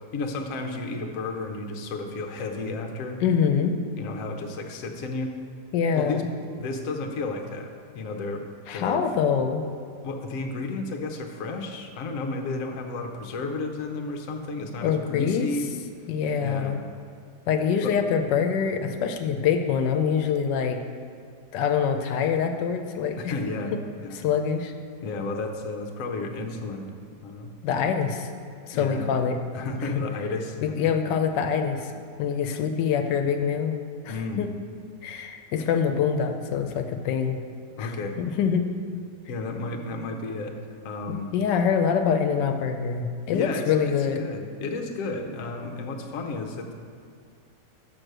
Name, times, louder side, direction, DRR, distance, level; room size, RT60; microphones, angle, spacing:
voice 1, 0.1-3.2 4.0-5.3 5.9-6.2 6.6-7.7 7.9-8.4 8.7-9.0 10.0-15.7 16.4-16.8 17.8-18.0 23.2-23.7 24.0-24.2 25.0-26.9 27.2-27.5 28.7-29.1 29.5-30.9 34.1-34.5 37.8-38.2 39.3-40.6 40.8-41.3 43.3-46.7, left 3 dB, 60° left, 3 dB, 1.0 m, -32 dB
voice 2, 3.2-3.8 5.7-6.2 8.7-9.6 14.8-15.5 16.1-16.8 17.5-20.8 21.5-23.3 24.1-24.7 27.6-28.3 28.6-29.4 29.8-30.0 30.6-31.9 32.2-34.5 35.0-37.4 37.8-37.9 38.2-38.6 41.1-44.2, left 7 dB, 85° left, 6 dB, 1.2 m, -25 dB
6.2 x 6.1 x 6.6 m, 2.2 s
omnidirectional pair, 1.9 m